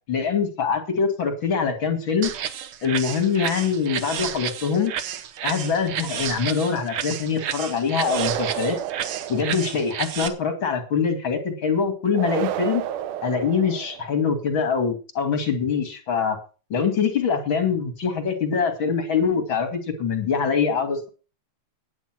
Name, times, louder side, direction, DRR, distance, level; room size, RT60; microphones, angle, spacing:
voice 1, 0.1-2.3 2.8-4.9 5.4-8.8 9.3-12.8 13.2-16.4 16.7-21.1, left 6 dB, 40° left, 7 dB, 2.8 m, -24 dB
sound 1, 2.2-10.3, right 9 dB, 65° right, 1.3 m, -31 dB
sound 2, 8.0-10.0 12.1-14.2, right 11 dB, 85° right, 2.4 m, -31 dB
10.0 x 9.8 x 6.0 m, 0.35 s
omnidirectional pair, 3.5 m